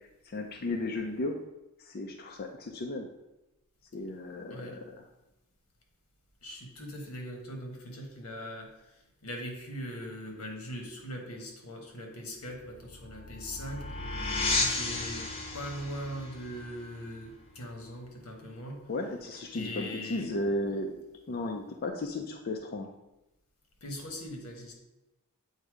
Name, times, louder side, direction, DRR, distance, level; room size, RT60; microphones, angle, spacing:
voice 1, 0.2-1.4 1.8-3.1 3.9-4.8 18.9-21.0 21.3-22.9, left 2 dB, 45° left, 2 dB, 0.5 m, -34 dB
voice 2, 4.5-4.8 6.4-14.2 14.5-15.3 15.5-18.8 19.5-20.3 23.8-24.7, equal, 85° left, 2 dB, 1.3 m, -41 dB
sound 1, 12.5-17.9, left 2 dB, 25° left, 0.8 m, -34 dB
7.8 x 2.7 x 4.8 m, 0.93 s
head